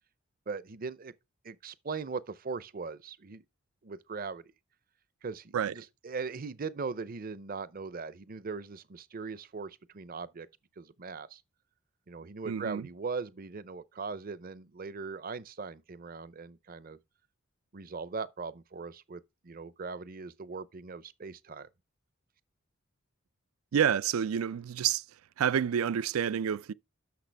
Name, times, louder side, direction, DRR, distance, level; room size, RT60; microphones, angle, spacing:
voice 1, 0.5-1.1 1.4-3.4 3.8-4.5 5.2-10.5 10.8-11.4 12.1-17.0 17.7-21.7, right 4 dB, 45° right, 0.6 m, -40 dB
voice 2, 12.5-12.9 23.7-25.0 25.4-26.7, right 8 dB, 85° right, 0.4 m, -28 dB
10.0 x 6.6 x 3.4 m
head